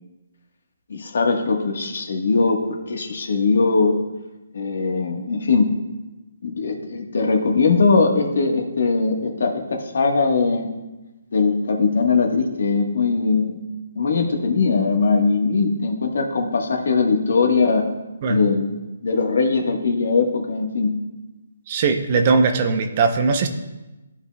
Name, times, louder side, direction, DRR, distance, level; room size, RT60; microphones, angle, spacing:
voice 1, 0.9-4.0 4.5-5.7 6.4-10.7 11.3-13.6 13.9-17.9 18.3-18.7 19.0-20.9, left 4 dB, 65° left, 3 dB, 1.3 m, -20 dB
voice 2, 21.7-23.5, right 4 dB, 35° right, 7 dB, 0.6 m, -19 dB
12.5 x 5.0 x 2.3 m, 1.1 s
hypercardioid pair, 160°, 0 cm